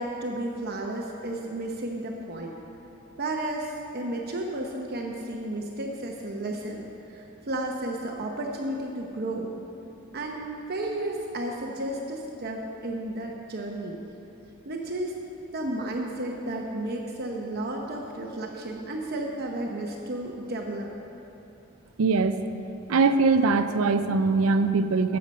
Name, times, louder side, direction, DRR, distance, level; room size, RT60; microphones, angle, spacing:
voice 1, 0.0-2.5 3.2-9.5 10.1-14.0 14.6-15.1 15.5-20.9, right 1 dB, 50° right, 0 dB, 0.9 m, -33 dB
voice 2, 22.0-22.4 22.9-25.2, right 4 dB, 80° right, 10 dB, 0.5 m, -22 dB
12.5 x 7.8 x 5.3 m, 2.9 s
head